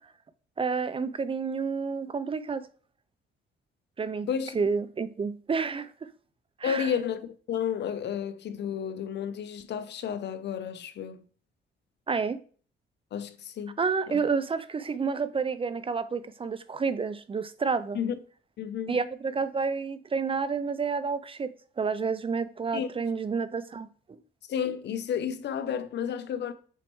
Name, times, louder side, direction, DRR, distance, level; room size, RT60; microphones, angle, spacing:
voice 1, 0.6-2.7 4.0-4.3 4.5-5.9 6.6-6.9 12.1-12.4 13.8-18.0 18.9-24.2, right 5 dB, 25° right, 0.4 m, -30 dB
voice 2, 6.6-11.2 13.1-13.8 14.1-14.2 17.9-18.1 18.6-19.0 22.7-22.9 24.5-26.5, left 8 dB, 60° left, 0.7 m, -32 dB
7.0 x 4.4 x 3.1 m
cardioid pair, 90°, 20 cm